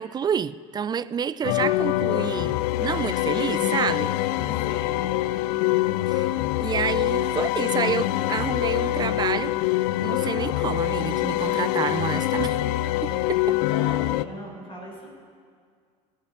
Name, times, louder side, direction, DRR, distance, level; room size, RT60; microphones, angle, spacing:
voice 1, 0.0-4.1 6.1-6.3 6.6-9.5 10.0-12.6 13.0-13.6, right 7 dB, 20° right, 0.3 m, -29 dB
sound 1, 1.4-14.2, left 15 dB, 80° left, 0.4 m, -25 dB
voice 2, 4.4-5.0 13.7-15.1, equal, 30° left, 4.5 m, -39 dB
18.0 x 11.0 x 4.3 m
supercardioid pair, 100°, 19 cm